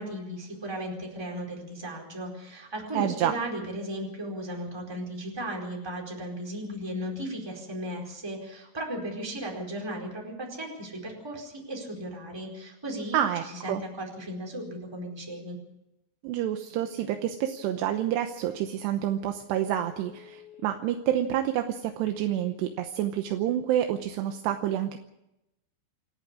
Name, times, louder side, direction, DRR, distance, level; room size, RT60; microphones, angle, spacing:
voice 1, 0.0-13.2 13.4-15.6, equal, 5° right, 0 dB, 4.0 m, -36 dB
voice 2, 2.9-3.3 13.1-13.8 16.2-25.0, right 11 dB, 80° right, 6 dB, 3.0 m, -28 dB
Telephone, 16.2-16.5 16.8-17.9 18.4-18.5 19.0-19.1 19.5-20.6 21.9-22.5, left 9 dB, 75° left, 5.5 m, -53 dB
27.5 x 9.8 x 9.9 m, 0.88 s
omnidirectional pair, 5.1 m